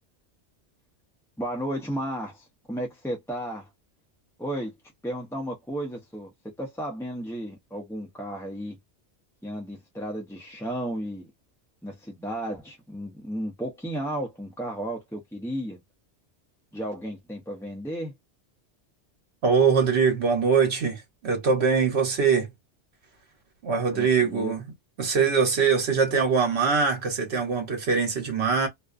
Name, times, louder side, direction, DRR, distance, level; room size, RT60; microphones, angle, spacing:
voice 1, 1.4-3.7 4.4-4.7 5.0-8.8 9.4-11.3 11.8-15.8 16.7-18.1 23.9-24.5, right 1 dB, 5° left, 0.4 m, -33 dB
voice 2, 19.4-22.5 23.6-24.6 25.0-28.7, right 5 dB, 70° right, 1.1 m, -23 dB
2.4 x 2.2 x 2.4 m
omnidirectional pair, 1.2 m